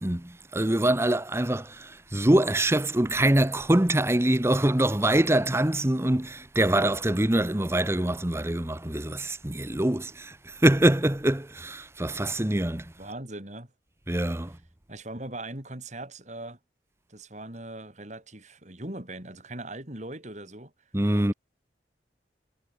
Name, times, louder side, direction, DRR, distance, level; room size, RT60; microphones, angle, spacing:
voice 1, 0.0-10.4 10.6-12.8 14.1-14.5 20.9-21.3, right 1 dB, 15° right, 0.9 m, -24 dB
voice 2, 13.0-13.7 14.9-16.6 17.1-20.7 21.1-21.3, right 1 dB, 40° right, 4.3 m, -40 dB
head